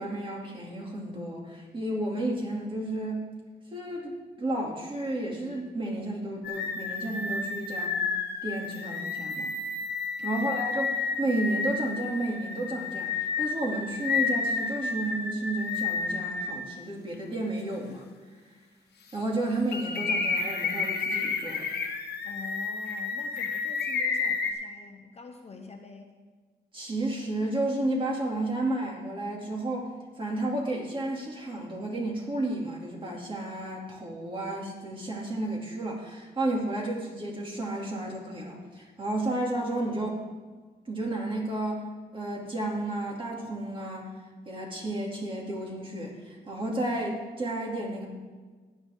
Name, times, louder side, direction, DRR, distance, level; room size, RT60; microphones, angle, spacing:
voice 1, 0.0-3.3 3.7-7.9 8.4-9.5 10.2-18.0 19.1-21.9 26.7-29.9 30.2-40.2 40.9-41.8 42.1-44.1 44.5-48.1, right 1 dB, 30° right, -1 dB, 2.6 m, -32 dB
sound 1, 6.4-16.6 17.1-17.2 19.7-24.5, left 4 dB, 75° left, 1.4 m, -31 dB
voice 2, 22.2-26.1, left 4 dB, 35° left, 4 dB, 1.0 m, -45 dB
16.0 x 9.9 x 3.7 m, 1.4 s
wide cardioid pair, 130°, 17 cm